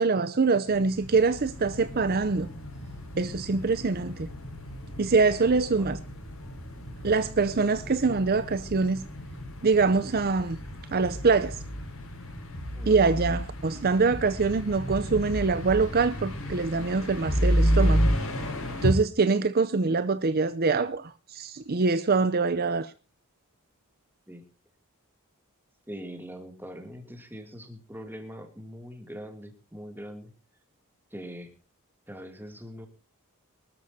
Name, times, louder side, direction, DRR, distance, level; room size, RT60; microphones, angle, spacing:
voice 1, 0.0-2.5 3.2-4.3 5.0-6.0 7.0-9.0 9.6-10.6 10.9-11.6 12.9-18.0 18.8-22.9, right 4 dB, 45° right, 0.6 m, -24 dB
sound 1, 0.7-18.9, equal, 65° left, 5.3 m, -31 dB
voice 2, 5.0-5.9 12.8-13.0 24.3-24.5 25.9-30.3 31.1-31.5 32.1-32.9, equal, 10° right, 2.6 m, -42 dB
24.5 x 13.0 x 2.8 m
head